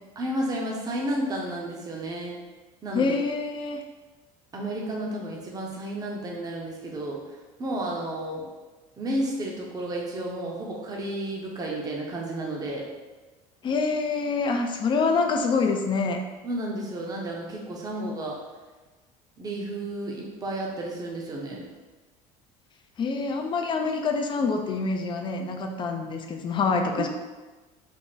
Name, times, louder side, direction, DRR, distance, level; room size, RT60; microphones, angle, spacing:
voice 1, 0.2-2.4 2.8-3.2 4.5-7.2 7.6-8.5 9.0-12.9 16.4-18.4 19.4-21.7 27.0-27.1, right 1 dB, 20° right, -2 dB, 0.7 m, -32 dB
voice 2, 2.9-3.8 13.6-16.2 23.0-27.1, left 4 dB, 30° left, 4 dB, 0.4 m, -26 dB
3.5 x 2.0 x 3.9 m, 1.2 s
supercardioid pair, 120°, 17 cm